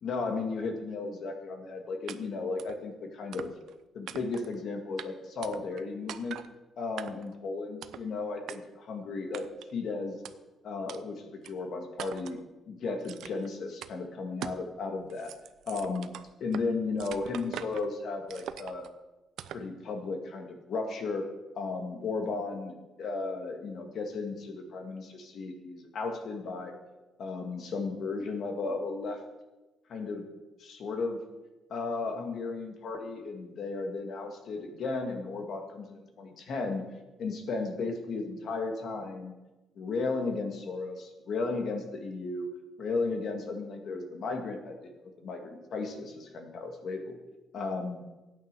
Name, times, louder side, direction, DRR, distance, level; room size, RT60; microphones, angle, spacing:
voice 1, 0.0-3.5 3.9-6.4 6.8-9.5 9.7-10.2 10.6-12.4 12.7-15.3 15.7-16.1 16.4-18.9 19.5-21.3 21.6-26.8 27.2-29.2 29.9-30.3 30.6-31.2 31.7-36.8 37.2-39.3 39.8-42.5 42.8-47.2 47.5-48.0, left 3 dB, 50° left, 4 dB, 2.0 m, -35 dB
sound 1, 2.1-2.2 2.6-2.8 3.3-3.7 4.1-4.5 5.0-5.1 5.4-5.8 6.1-6.5 7.0-7.3 7.8-8.1 8.5-8.6 9.3-9.7 10.2-10.3 10.9-11.0 11.4-11.5 12.0-12.4 13.0-13.5 13.8-13.9 14.4-14.7 15.0-16.7 17.0-17.9 18.3-18.9 19.4-19.7, right 10 dB, 70° right, 0.6 m, -42 dB
13.0 x 9.0 x 6.8 m, 1.1 s
cardioid pair, 175°, 0 cm